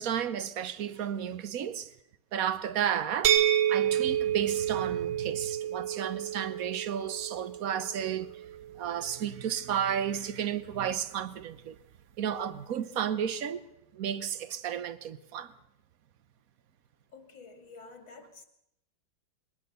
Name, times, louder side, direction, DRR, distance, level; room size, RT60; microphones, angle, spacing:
voice 1, 0.0-1.9 2.3-3.4 3.7-8.4 8.8-11.7 12.2-13.6 13.9-15.5, right 9 dB, 55° right, 1.2 m, -32 dB
sound 1, 3.2-9.0, right 10 dB, 80° right, 1.9 m, -29 dB
voice 2, 17.1-18.4, left 4 dB, 90° left, 3.1 m, -50 dB
22.0 x 19.5 x 6.7 m
omnidirectional pair, 2.1 m